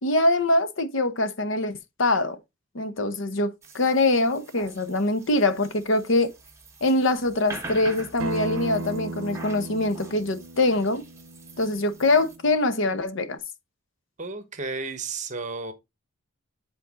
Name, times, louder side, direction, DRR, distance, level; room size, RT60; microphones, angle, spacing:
voice 1, 0.0-2.4 2.7-6.3 6.8-11.0 11.6-13.4, left 2 dB, 65° left, 0.9 m, -23 dB
sound 1, 3.6-12.4, right 2 dB, 15° right, 1.5 m, -44 dB
Acoustic guitar, 8.2-13.4, right 3 dB, 90° right, 0.6 m, -37 dB
voice 2, 14.2-15.7, right 4 dB, 35° right, 1.1 m, -33 dB
7.9 x 4.4 x 3.7 m
head